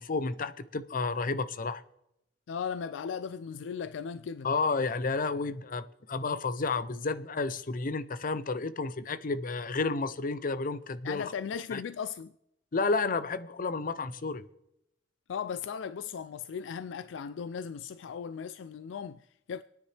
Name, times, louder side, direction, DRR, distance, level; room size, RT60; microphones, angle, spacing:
voice 1, 0.0-1.8 4.4-11.3 11.7-11.8 12.7-14.4, left 3 dB, 50° left, 0.6 m, -31 dB
voice 2, 2.5-4.5 11.0-12.3 15.3-19.6, left 6 dB, 85° left, 0.4 m, -37 dB
27.0 x 9.7 x 3.3 m
head